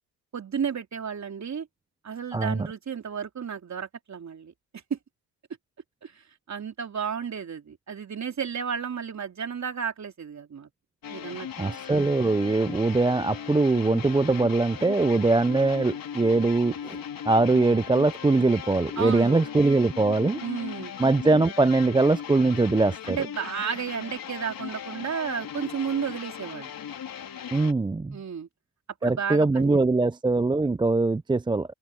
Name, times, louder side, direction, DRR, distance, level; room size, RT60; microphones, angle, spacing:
voice 1, 0.3-1.7 2.0-4.5 4.9-5.0 6.0-10.7 11.1-11.8 19.0-19.4 20.4-20.9 23.1-26.7 28.1-28.5 29.0-30.0, right 7 dB, 35° right, 3.5 m, -32 dB
voice 2, 2.3-2.7 11.6-17.0 17.2-20.4 21.0-23.2 27.5-28.2 29.0-31.7, right 3 dB, 10° right, 0.6 m, -22 dB
sound 1, 11.0-27.7, left 8 dB, 50° left, 4.3 m, -38 dB
supercardioid pair, 75°, 45 cm